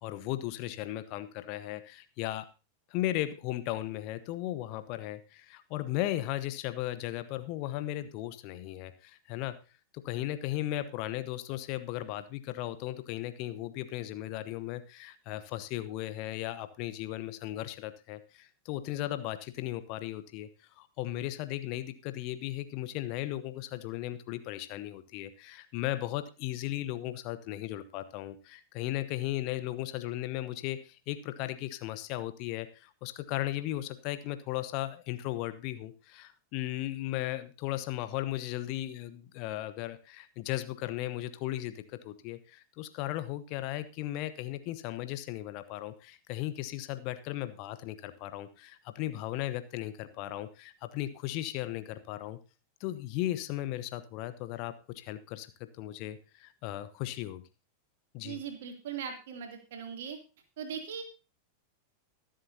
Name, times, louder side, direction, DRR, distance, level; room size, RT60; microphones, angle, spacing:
voice 1, 0.0-2.5 2.9-9.6 9.9-20.5 20.8-52.4 52.8-57.4 58.1-58.4, left 14 dB, 45° left, 12 dB, 0.9 m, -36 dB
voice 2, 58.2-60.2 60.6-61.0, right 7 dB, 55° right, 4 dB, 2.8 m, -39 dB
23.0 x 7.6 x 2.8 m, 0.31 s
figure-of-eight pair, 90°, 0 cm